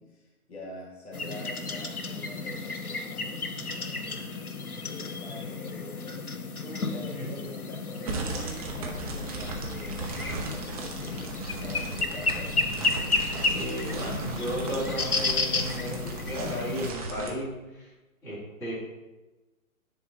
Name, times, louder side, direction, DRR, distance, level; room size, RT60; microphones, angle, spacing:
voice 1, 0.0-3.2 3.8-4.3 4.8-6.2 6.6-12.8, left 1 dB, 45° left, -2 dB, 2.0 m, -45 dB
sound 1, 1.1-16.9, left 3 dB, 80° left, 0.9 m, -32 dB
sound 2, 8.1-17.3, right 3 dB, 25° right, 0.9 m, -36 dB
voice 2, 13.5-17.9 18.2-18.7, equal, 5° left, -10 dB, 2.0 m, -34 dB
9.8 x 3.8 x 4.1 m, 1.1 s
figure-of-eight pair, 135°, 44 cm